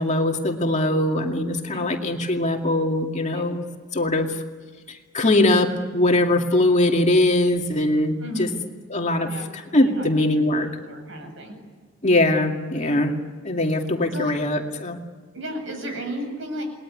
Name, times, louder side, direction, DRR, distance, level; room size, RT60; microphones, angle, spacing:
voice 1, 0.0-3.6 3.9-4.4 4.9-8.5 8.9-10.7 12.0-13.1 13.4-15.0, left 1 dB, 35° left, 2 dB, 2.4 m, -21 dB
voice 2, 8.2-8.6 9.2-11.6 12.8-13.0 14.1-14.3 15.3-16.6, equal, 65° right, 5 dB, 8.0 m, -34 dB
29.0 x 20.5 x 9.9 m, 1.5 s
head